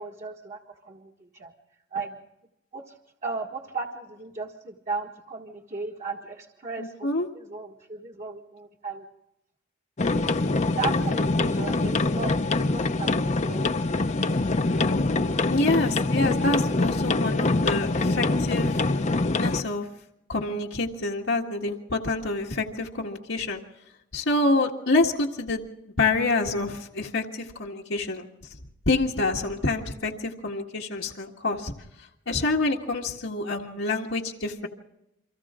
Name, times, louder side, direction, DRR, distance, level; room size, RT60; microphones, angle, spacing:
voice 1, 0.0-1.5 1.9-2.2 2.7-2.9 3.2-7.1 7.3-9.1 10.1-10.4 10.8-13.6, right 4 dB, 40° right, 0 dB, 1.7 m, -36 dB
voice 2, 6.8-7.3 15.5-18.8 19.4-19.9 20.3-23.6 24.1-25.6 26.0-28.3 28.9-31.7 32.3-34.7, left 2 dB, 85° left, -2 dB, 1.8 m, -27 dB
sound 1, 10.0-19.6, left 2 dB, 40° left, 0.8 m, -24 dB
30.0 x 24.5 x 3.8 m, 0.87 s
head